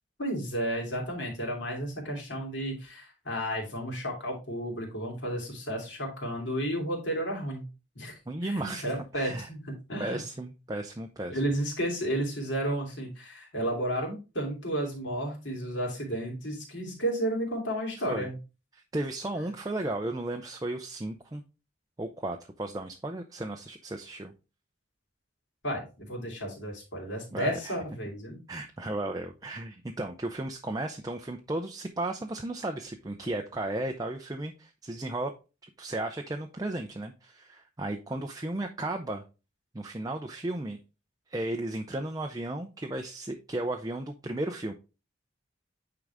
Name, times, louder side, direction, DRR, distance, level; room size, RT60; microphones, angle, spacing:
voice 1, 0.2-7.7 7.9-10.2 11.3-18.4 25.6-28.4, right 1 dB, 70° left, 0 dB, 3.0 m, -32 dB
voice 2, 8.3-8.8 9.1-9.5 10.0-11.4 18.1-18.3 18.7-21.4 22.0-24.3 27.3-27.8 28.5-35.3 35.6-39.2 39.7-40.8 41.3-44.7, right 1 dB, 20° right, 4 dB, 0.5 m, -34 dB
9.2 x 3.9 x 3.5 m, 0.30 s
head